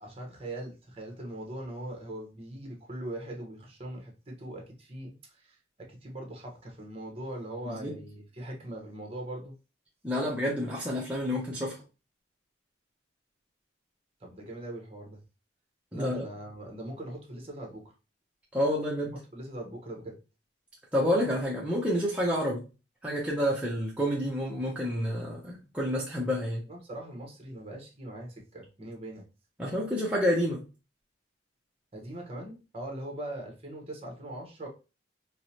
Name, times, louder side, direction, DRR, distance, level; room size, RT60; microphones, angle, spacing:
voice 1, 0.0-9.5 14.2-15.2 15.9-17.8 19.3-20.2 26.7-29.2 31.9-34.7, right 1 dB, 30° right, 1 dB, 0.9 m, -41 dB
voice 2, 10.0-11.8 15.9-16.3 18.5-19.1 20.9-22.6 23.0-26.6 29.6-30.6, equal, 5° right, -5 dB, 0.6 m, -29 dB
4.5 x 2.1 x 2.8 m, 0.31 s
head